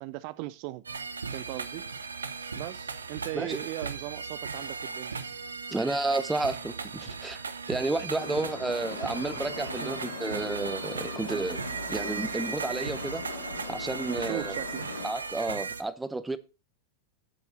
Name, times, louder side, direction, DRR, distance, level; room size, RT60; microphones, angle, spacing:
voice 1, 0.0-0.8 1.3-1.8 2.5-5.1 9.8-10.0 11.3-11.4 14.2-14.8, right 19 dB, 45° right, 0.4 m, -38 dB
sound 1, 0.8-15.8, right 5 dB, 75° right, 0.9 m, -37 dB
voice 2, 5.7-7.4 7.7-11.6 11.9-13.2 13.7-14.5 15.0-16.4, right 2 dB, 10° right, 0.8 m, -31 dB
sound 2, 8.2-15.1, left 3 dB, 75° left, 3.3 m, -40 dB
10.5 x 8.1 x 3.9 m
figure-of-eight pair, 90°, 0 cm